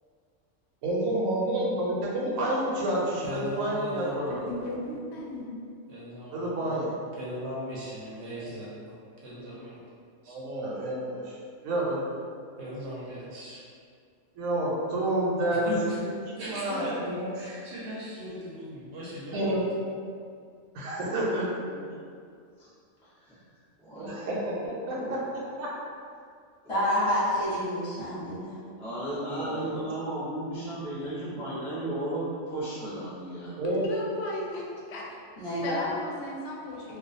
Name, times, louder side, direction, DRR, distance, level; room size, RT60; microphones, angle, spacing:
voice 1, 0.8-4.5 6.3-6.9 8.4-8.5 10.3-11.4 11.6-12.0 14.4-15.7 16.4-17.3 19.3-19.6 20.7-21.5 24.0-25.0 25.6-25.7 29.3-29.6 33.6-33.8, right 1 dB, 85° right, -5 dB, 1.0 m, -29 dB
voice 2, 3.2-4.4 5.9-6.7 7.2-9.0 9.2-9.8 10.2-10.3 12.6-13.6 15.6-16.0 16.3-19.7, equal, 65° right, -6 dB, 0.8 m, -38 dB
voice 3, 4.3-5.7 33.8-35.0 35.6-37.0, left 1 dB, 65° left, -3 dB, 0.7 m, -36 dB
voice 4, 21.5-21.9 22.6-22.7 23.0-23.4 23.8-24.2 24.8-25.2 28.8-33.5, right 1 dB, 5° left, -10 dB, 0.4 m, -35 dB
voice 5, 26.7-28.6 35.4-35.9, equal, 30° left, -11 dB, 0.8 m, -28 dB
2.4 x 2.3 x 2.5 m, 2.2 s
omnidirectional pair, 1.4 m